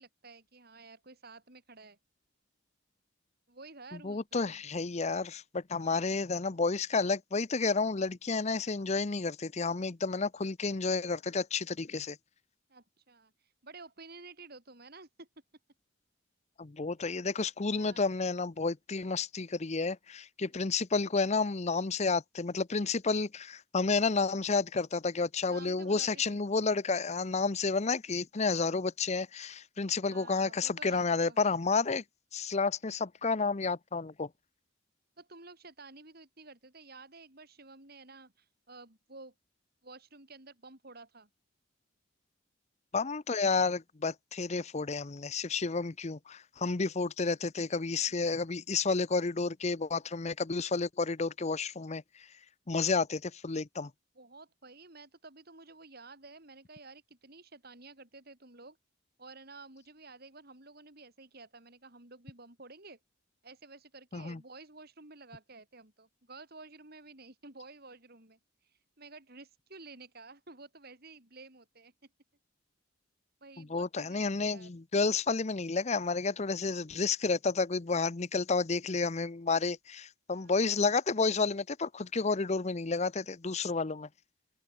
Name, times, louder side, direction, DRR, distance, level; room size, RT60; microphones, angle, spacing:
voice 1, 0.0-2.0 3.5-4.6 12.7-15.3 17.7-18.1 20.5-20.6 25.4-26.4 30.0-31.6 35.2-39.3 39.8-41.3 48.0-48.2 54.1-58.8 59.2-63.0 63.4-71.9 73.4-74.7 80.3-80.6, right 3 dB, 50° right, 4.9 m, -52 dB
voice 2, 3.9-12.2 16.6-32.0 32.3-34.3 42.9-52.0 52.7-53.9 64.1-64.4 73.6-84.1, left 4 dB, 35° left, 0.7 m, -31 dB
open air
head